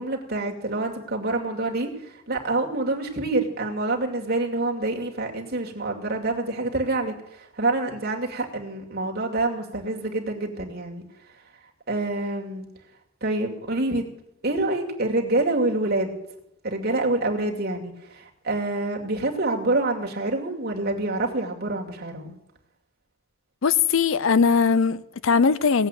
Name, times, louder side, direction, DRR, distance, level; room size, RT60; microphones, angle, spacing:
voice 1, 0.0-11.0 11.9-12.7 13.2-14.1 14.4-16.2 16.6-22.4, right 2 dB, 45° right, 2.4 m, -27 dB
voice 2, 23.6-25.9, left 5 dB, 60° left, 0.6 m, -20 dB
17.5 x 8.0 x 9.0 m
head